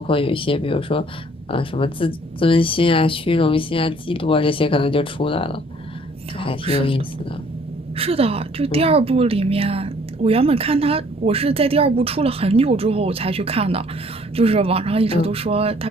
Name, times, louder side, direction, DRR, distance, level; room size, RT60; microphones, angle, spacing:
voice 1, 0.0-6.0 6.3-7.5 8.7-8.9 15.1-15.3, left 3 dB, 30° left, 0.5 m, -21 dB
voice 2, 8.0-8.4 8.7-9.8 10.2-13.8 14.4-15.7, right 3 dB, 35° right, 0.4 m, -19 dB
4.4 x 4.3 x 5.2 m
head